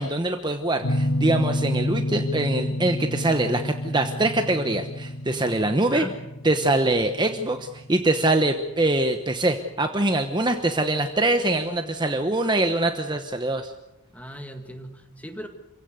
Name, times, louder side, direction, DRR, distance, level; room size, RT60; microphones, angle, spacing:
voice 1, 0.0-6.1 6.4-13.7, right 2 dB, 20° right, 6 dB, 1.0 m, -23 dB
sound 1, 0.8-9.5, left 1 dB, 75° left, 2.1 m, -30 dB
voice 2, 11.5-12.2 13.0-13.2 14.1-15.5, equal, 5° left, 6 dB, 1.9 m, -39 dB
26.5 x 16.5 x 8.0 m, 0.97 s
head